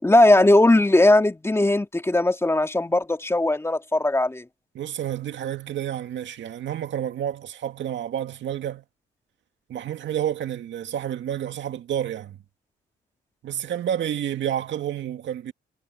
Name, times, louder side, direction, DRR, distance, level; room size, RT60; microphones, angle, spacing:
voice 1, 0.0-4.4, left 2 dB, 15° left, 2.8 m, -18 dB
voice 2, 4.7-8.8 9.7-12.4 13.4-15.5, right 10 dB, 70° right, 2.1 m, -29 dB
cardioid pair, 90°, 20 cm